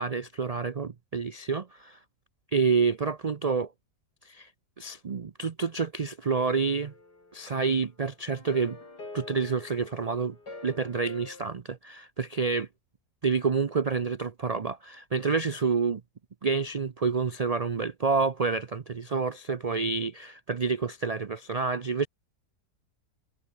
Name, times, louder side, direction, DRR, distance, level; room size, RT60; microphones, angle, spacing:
voice 1, 0.0-2.0 2.5-3.7 4.2-4.5 4.8-6.9 7.3-8.8 9.1-10.4 10.6-12.7 13.2-16.0 16.4-22.1, right 5 dB, 85° right, 0.3 m, -28 dB
sound 1, 6.3-7.8 8.3-11.5, left 2 dB, 90° left, 6.2 m, -46 dB
omnidirectional pair, 1.7 m